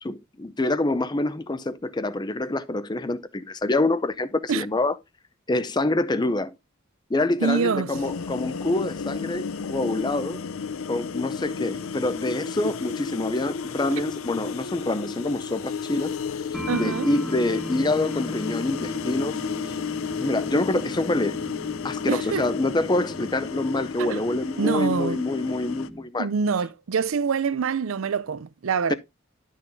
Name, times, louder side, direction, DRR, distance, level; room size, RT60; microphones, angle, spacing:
voice 1, 0.0-4.9 5.5-6.5 7.1-10.4 10.9-16.1 16.7-19.4 20.2-21.4 21.8-26.3 28.9-29.0, left 2 dB, 20° left, 0.5 m, -26 dB
voice 2, 7.4-7.9 13.9-14.0 16.7-17.1 22.1-22.5 24.0-24.2 24.6-25.2 26.2-28.9, right 5 dB, 75° right, 0.5 m, -25 dB
sound 1, 7.9-25.9, left 6 dB, 80° left, 0.5 m, -33 dB
sound 2, 16.5-26.0, equal, ahead, 0.9 m, -37 dB
11.5 x 6.5 x 2.6 m
head